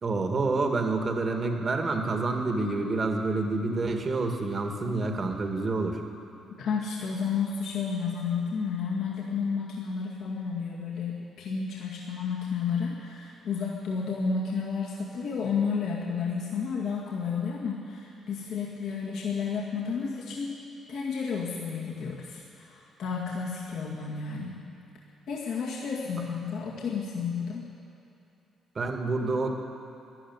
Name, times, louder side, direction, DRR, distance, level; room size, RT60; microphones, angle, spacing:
voice 1, 0.0-6.0 28.8-29.5, right 3 dB, 40° right, 3 dB, 1.9 m, -28 dB
voice 2, 6.6-20.6 20.9-24.6 25.3-27.7, left 5 dB, 75° left, -4 dB, 2.0 m, -31 dB
13.0 x 11.0 x 9.5 m, 2.8 s
cardioid pair, 90°, 0 cm